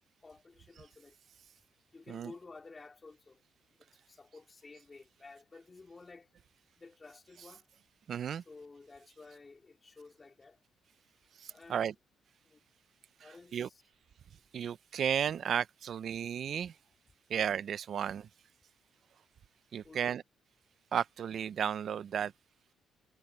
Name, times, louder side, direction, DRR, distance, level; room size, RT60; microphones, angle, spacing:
voice 1, 0.2-1.1 1.9-3.4 4.1-6.3 6.8-7.7 8.5-10.6 11.5-12.0 12.4-12.6 13.2-13.8 19.8-20.2, left 3 dB, 30° left, 3.9 m, -53 dB
voice 2, 8.1-8.4 11.4-11.9 13.2-13.7 14.5-16.7 17.3-18.3 19.7-20.2 20.9-22.3, right 8 dB, 60° right, 0.6 m, -34 dB
cardioid pair, 85°, 0 cm